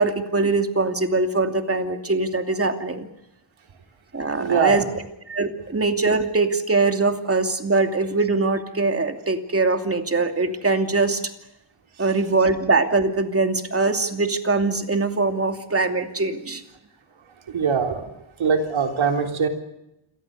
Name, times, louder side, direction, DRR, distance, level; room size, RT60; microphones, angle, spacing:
voice 1, 0.0-3.1 4.1-4.9 5.3-11.2 12.0-16.6, right 3 dB, 30° right, 6 dB, 2.7 m, -22 dB
voice 2, 4.3-4.9 17.5-18.1 18.4-19.5, right 6 dB, 85° right, 4 dB, 3.7 m, -22 dB
28.5 x 23.0 x 6.7 m, 0.88 s
wide cardioid pair, 115°, 46 cm